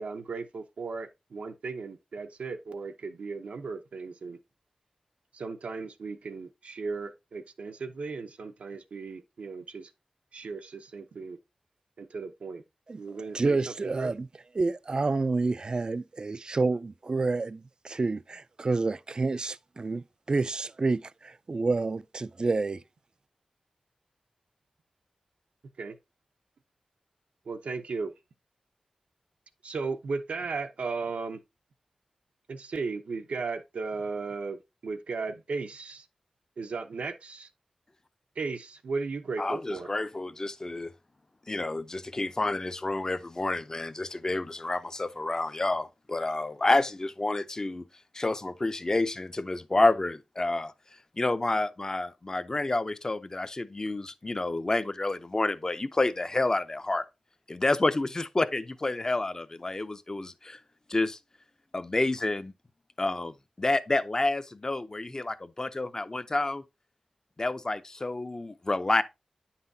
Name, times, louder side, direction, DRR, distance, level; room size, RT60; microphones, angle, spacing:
voice 1, 0.0-4.4 5.3-9.9 10.3-11.4 12.0-12.6 13.0-14.1 25.8-26.0 27.5-28.1 29.6-31.4 32.5-36.1 36.6-37.5 38.4-39.9, right 4 dB, 90° right, 0.7 m, -36 dB
voice 2, 13.3-14.3 14.5-22.8, right 3 dB, 40° right, 0.3 m, -29 dB
voice 3, 39.4-40.9 41.5-47.9 48.1-50.7 51.2-57.1 57.5-60.6 60.9-61.2 61.7-62.5 63.0-66.6 67.4-69.0, left 2 dB, 30° left, 0.5 m, -29 dB
9.5 x 5.7 x 2.7 m
wide cardioid pair, 85°, 2 cm